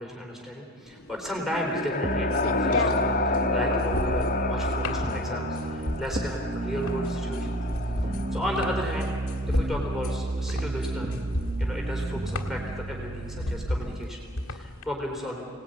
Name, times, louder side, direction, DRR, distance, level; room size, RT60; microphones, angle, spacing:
voice 1, 0.0-2.9 3.2-7.7 8.0-9.2 9.5-11.2 11.6-15.5, equal, ahead, -1 dB, 3.7 m, -34 dB
sound 1, 1.0-14.8, left 1 dB, 80° left, 1.6 m, -33 dB
sound 2, 1.0-8.9, left 3 dB, 40° left, 1.6 m, -30 dB
sound 3, 2.0-14.0, right 2 dB, 30° right, 0.8 m, -31 dB
26.5 x 18.5 x 9.2 m, 2.4 s
head